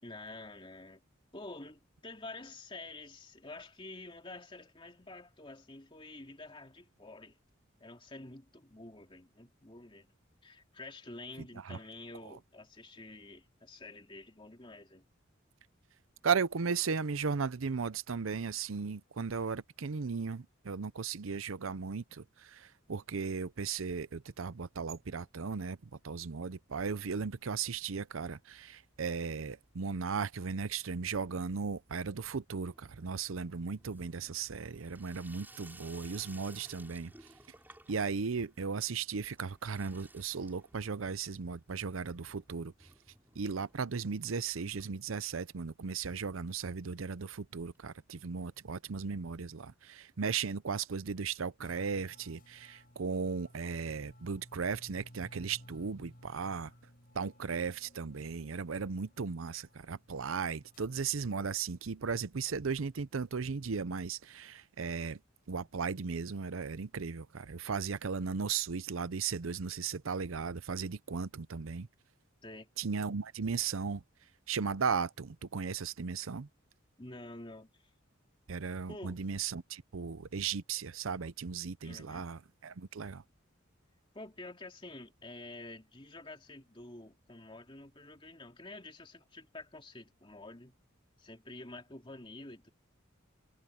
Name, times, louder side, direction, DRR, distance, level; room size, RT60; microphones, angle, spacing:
voice 1, 0.0-1.0 1.3-7.4 7.8-10.1 10.4-15.0 72.4-72.7 77.0-77.9 78.9-79.2 81.8-82.3 84.1-90.7 91.2-92.7, left 2 dB, 25° left, 2.7 m, -49 dB
voice 2, 16.2-37.3 37.9-42.9 43.4-56.7 57.1-65.2 65.5-71.9 72.8-74.0 74.5-76.5 78.5-83.2, right 5 dB, 90° right, 0.7 m, -36 dB
Water tap faucet / Sink (filling or washing), 28.5-29.3 29.5-30.1 30.4-45.7 46.0-46.1 46.3-46.4 46.6-46.7 47.7-47.8, right 2 dB, 10° right, 6.4 m, -59 dB
sound 1, 51.6-60.9, equal, 45° left, 6.1 m, -58 dB
head